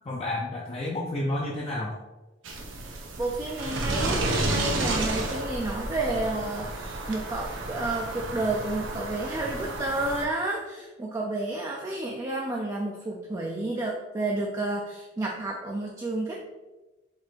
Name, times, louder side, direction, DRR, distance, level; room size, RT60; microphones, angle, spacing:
voice 1, 0.0-1.9 4.0-4.2, left 1 dB, 30° left, -4 dB, 0.6 m, -31 dB
sound 1, 2.4-10.2, right 2 dB, 85° right, 0.7 m, -31 dB
voice 2, 3.2-16.4, right 2 dB, 20° right, -2 dB, 0.4 m, -31 dB
4.3 x 2.6 x 4.5 m, 1.1 s
head